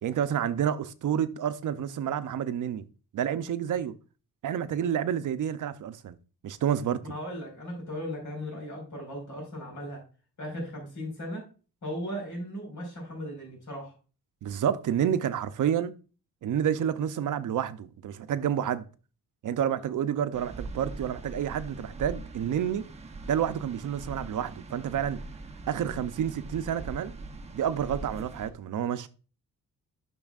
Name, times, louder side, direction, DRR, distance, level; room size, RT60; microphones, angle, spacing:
voice 1, 0.0-2.8 3.1-3.9 4.4-6.2 6.4-7.0 14.4-15.9 16.4-18.8 19.4-22.8 23.3-25.2 25.7-27.1 27.5-29.1, right 9 dB, 65° right, 0.6 m, -29 dB
voice 2, 7.0-10.0 10.4-11.4 11.8-13.9, equal, 60° left, 4.6 m, -37 dB
sound 1, 20.3-28.5, right 2 dB, 20° right, 0.7 m, -42 dB
10.5 x 6.1 x 2.4 m
wide cardioid pair, 135°, 34 cm